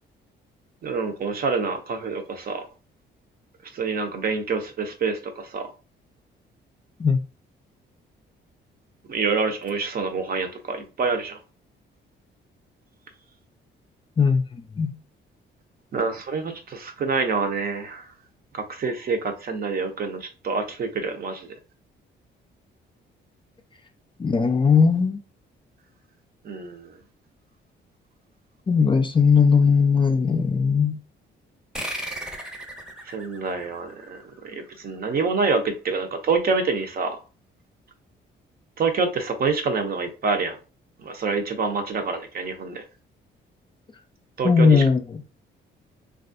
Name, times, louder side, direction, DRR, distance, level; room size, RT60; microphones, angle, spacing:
voice 1, 0.8-2.7 3.7-5.7 9.1-11.4 15.9-18.1 18.5-21.5 26.4-27.0 33.0-37.2 38.8-40.6 41.0-42.8 44.4-44.8, right 4 dB, 50° right, 0.7 m, -27 dB
voice 2, 14.2-14.9 24.2-25.2 28.7-31.0 44.4-45.0, left 5 dB, 25° left, 0.4 m, -19 dB
sound 1, 31.7-34.8, right 1 dB, 5° right, 0.8 m, -36 dB
3.3 x 2.4 x 2.5 m
cardioid pair, 90°, 20 cm